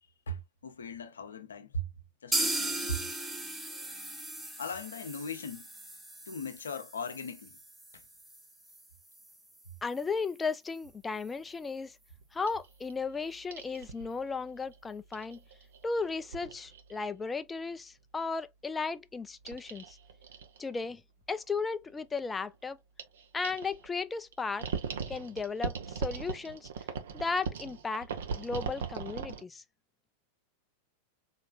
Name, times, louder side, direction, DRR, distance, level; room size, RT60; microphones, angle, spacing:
voice 1, 0.3-1.9 2.2-3.1 4.6-5.7 6.3-7.6, left 1 dB, 70° left, 0.7 m, -38 dB
sound 1, 2.3-10.0 10.3-10.4 10.8-10.9 11.3-11.4, right 1 dB, 5° right, 0.9 m, -38 dB
voice 2, 9.8-12.0 12.3-15.4 15.8-20.0 20.6-21.0 21.3-22.8 23.3-24.7 25.1-26.7 27.1-28.1 28.3-29.6, left 4 dB, 15° left, 0.4 m, -35 dB
sound 2, 12.1-17.0 19.4-20.6 22.5-22.6 23.0-23.9 24.3-24.4 24.6-29.4, right 6 dB, 60° right, 0.8 m, -40 dB
4.2 x 3.2 x 2.3 m
figure-of-eight pair, 90°, 0 cm